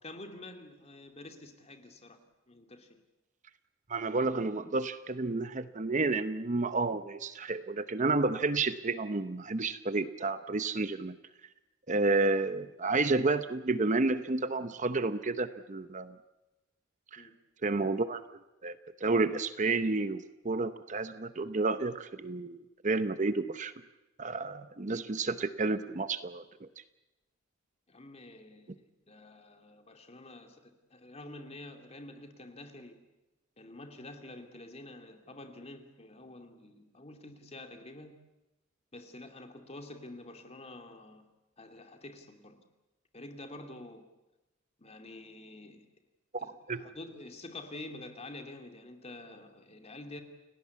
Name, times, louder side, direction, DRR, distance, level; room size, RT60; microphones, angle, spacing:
voice 1, 0.0-2.2 2.5-3.0 17.2-17.3 27.9-33.0 33.6-38.1 38.9-41.2 41.6-42.6 43.1-44.1 44.8-45.8 46.4-50.2, left 2 dB, 30° left, 5 dB, 2.6 m, -48 dB
voice 2, 3.9-11.2 11.9-16.2 17.1-17.2 17.6-18.2 18.6-23.7 24.2-26.4 46.3-46.8, right 3 dB, 40° right, 11 dB, 0.8 m, -30 dB
29.5 x 17.5 x 8.4 m, 1.1 s
head